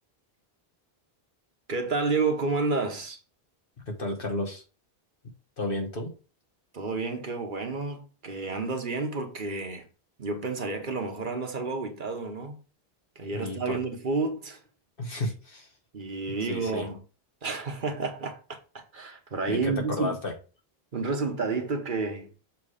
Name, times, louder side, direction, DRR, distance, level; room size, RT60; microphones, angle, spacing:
voice 1, 1.7-3.2 6.7-9.9 10.2-12.6 13.2-14.6 15.9-17.0 17.4-18.4 18.7-20.2 20.9-22.3, right 3 dB, 55° right, 1.1 m, -30 dB
voice 2, 3.9-4.6 5.6-6.1 13.3-13.8 15.0-15.7 16.3-16.9 19.5-20.3, left 2 dB, 60° left, 1.5 m, -32 dB
7.0 x 3.2 x 4.9 m
omnidirectional pair, 1.0 m